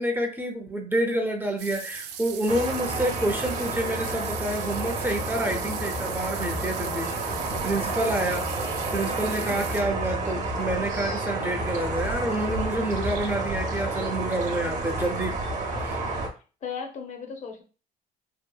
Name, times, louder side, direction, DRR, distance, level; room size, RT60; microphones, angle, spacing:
voice 1, 0.0-8.5 8.9-16.0, right 1 dB, 10° right, 2 dB, 0.5 m, -28 dB
sound 1, 1.6-9.8, right 9 dB, 90° right, 0.4 m, -39 dB
sound 2, 2.5-16.3, right 2 dB, 45° right, 0.7 m, -30 dB
voice 2, 9.1-9.6 16.6-17.6, left 6 dB, 45° left, 4 dB, 0.6 m, -37 dB
2.8 x 2.2 x 2.2 m, 0.35 s
cardioid pair, 110°, 17 cm